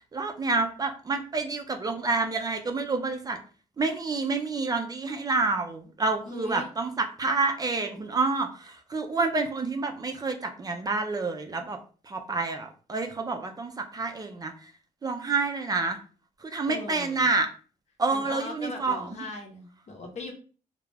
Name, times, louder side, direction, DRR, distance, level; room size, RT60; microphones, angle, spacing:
voice 1, 0.1-3.4 3.8-11.8 12.1-14.5 15.0-16.0 16.4-17.5 18.0-19.2, right 3 dB, 25° right, 5 dB, 0.4 m, -28 dB
voice 2, 6.3-6.7 16.7-17.3 18.1-20.3, left 2 dB, 55° left, 2 dB, 0.8 m, -39 dB
2.3 x 2.0 x 3.2 m, 0.39 s
cardioid pair, 100°, 14 cm